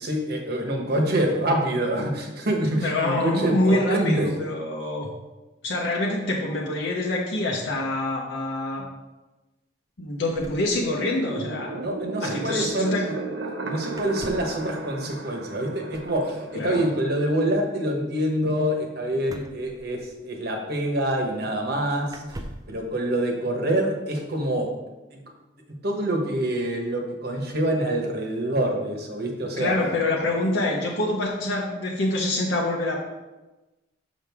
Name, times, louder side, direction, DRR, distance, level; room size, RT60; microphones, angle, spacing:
voice 1, 0.0-4.3 11.7-13.1 13.6-22.4 22.7-24.7 25.1-25.2 25.7-29.7, right 1 dB, 60° right, 2 dB, 1.2 m, -26 dB
voice 2, 2.8-5.1 5.6-8.8 10.0-11.7 12.2-13.0 16.5-16.8 29.6-33.0, left 2 dB, 80° left, -3 dB, 1.0 m, -26 dB
sound 1, 10.3-11.4 11.6-11.7 11.9-12.1 13.9-14.6 15.9-16.3 19.2-20.4 21.3-21.4 22.1-22.8, right 1 dB, 20° right, 0.4 m, -42 dB
sound 2, 11.0-17.5, right 3 dB, 80° right, 0.8 m, -35 dB
6.4 x 6.2 x 3.6 m, 1.1 s
head